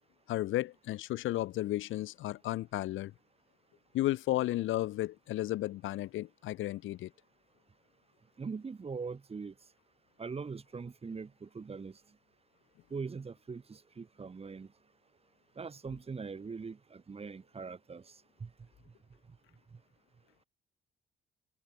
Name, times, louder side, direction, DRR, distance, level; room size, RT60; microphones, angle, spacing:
voice 1, 0.3-3.1 3.9-7.1, left 15 dB, 80° left, 0.7 m, -33 dB
voice 2, 8.4-9.5 10.2-12.0 12.9-14.7 15.6-18.0 18.4-18.5, right 5 dB, 30° right, 1.6 m, -41 dB
cardioid pair, 90°, 20 cm